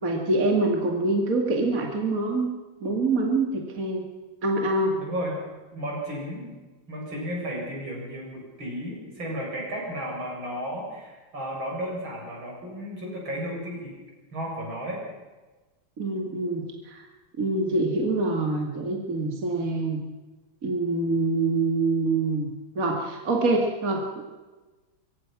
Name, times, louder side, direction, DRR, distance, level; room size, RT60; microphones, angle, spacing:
voice 1, 0.0-2.5 2.8-4.1 4.4-5.0 5.7-5.9 16.0-17.0 17.4-20.0 20.6-22.5 22.7-24.2, right 2 dB, 45° right, 1 dB, 2.6 m, -25 dB
voice 2, 5.0-5.4 5.8-6.5 6.9-14.0 14.3-15.0, equal, 80° right, -2 dB, 8.5 m, -33 dB
24.5 x 24.0 x 6.1 m, 1.2 s
omnidirectional pair, 2.1 m